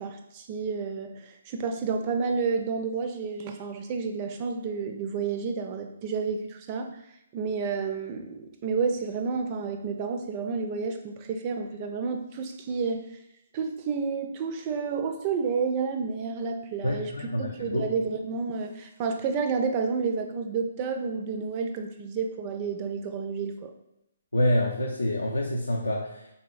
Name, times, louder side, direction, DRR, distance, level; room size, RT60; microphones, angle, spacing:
voice 1, 0.0-7.0 7.3-13.1 13.5-17.1 17.4-23.7, right 5 dB, 30° right, 5 dB, 0.4 m, -30 dB
voice 2, 16.8-17.9 24.3-26.3, left 1 dB, 80° left, -2 dB, 0.5 m, -27 dB
3.9 x 2.8 x 2.3 m, 0.84 s
figure-of-eight pair, 135°, 0 cm